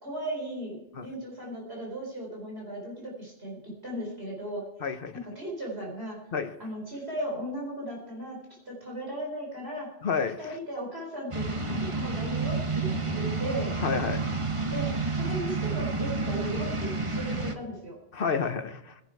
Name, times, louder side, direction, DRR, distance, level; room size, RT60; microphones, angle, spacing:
voice 1, 0.0-3.6 3.8-4.6 5.1-6.2 6.6-8.4 8.7-9.9 10.4-13.7 14.6-18.0, right 1 dB, 65° right, -2 dB, 4.6 m, -36 dB
voice 2, 4.8-5.1 6.3-6.5 10.0-10.6 13.8-14.2 18.1-19.0, left 5 dB, 55° left, 10 dB, 1.1 m, -30 dB
sound 1, 11.3-17.5, right 3 dB, 30° right, 1.2 m, -30 dB
20.5 x 11.0 x 4.7 m, 0.89 s
omnidirectional pair, 1.2 m